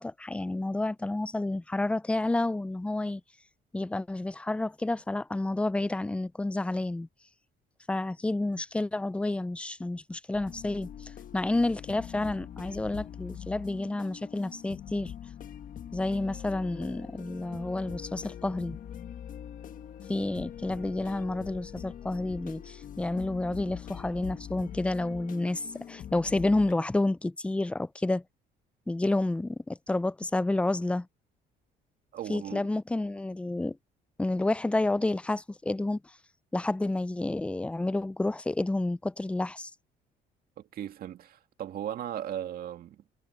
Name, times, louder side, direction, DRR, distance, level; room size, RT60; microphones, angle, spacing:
voice 1, 0.0-3.2 3.7-7.1 7.9-15.1 15.9-18.8 20.1-28.2 28.9-31.1 32.3-33.8 34.2-36.0 36.5-39.7, left 2 dB, 5° left, 0.4 m, -30 dB
sound 1, 10.3-26.7, left 9 dB, 55° left, 1.4 m, -43 dB
voice 2, 32.1-32.7 40.6-43.0, right 11 dB, 60° right, 2.1 m, -37 dB
cardioid pair, 110°, 17 cm